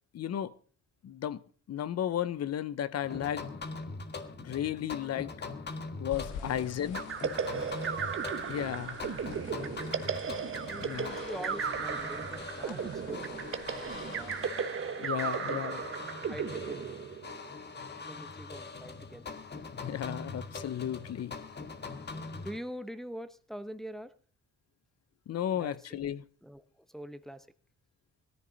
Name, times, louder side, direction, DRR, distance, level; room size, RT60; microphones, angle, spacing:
voice 1, 0.1-0.5 1.0-1.4 1.7-3.5 4.4-5.3 6.0-7.0 8.5-9.0 10.8-11.2 15.0-15.8 19.7-21.4 25.3-26.2, left 10 dB, 55° left, 0.8 m, -34 dB
sound 1, 3.0-22.6, left 4 dB, 35° left, 1.5 m, -43 dB
sound 2, 6.1-14.5, left 7 dB, 90° left, 1.5 m, -50 dB
voice 2, 6.3-6.7 7.7-8.1 9.4-10.1 10.7-14.4 15.5-15.6 16.3-17.0 18.0-19.3 22.1-24.1 25.5-26.1 26.4-27.5, equal, ahead, 1.0 m, -45 dB
sound 3, 6.9-17.5, right 6 dB, 45° right, 1.3 m, -35 dB
17.5 x 14.0 x 4.1 m
cardioid pair, 90°, 30 cm